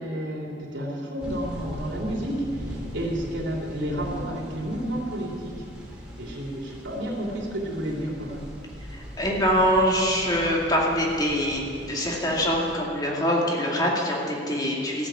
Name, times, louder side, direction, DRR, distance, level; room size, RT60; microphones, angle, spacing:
voice 1, 0.0-5.6 6.2-8.5, equal, 85° right, -1 dB, 3.0 m, -31 dB
sound 1, 1.2-12.8, equal, 5° right, 2.6 m, -40 dB
voice 2, 8.9-15.1, equal, 20° left, -2 dB, 2.4 m, -24 dB
14.5 x 8.3 x 8.9 m, 2.4 s
head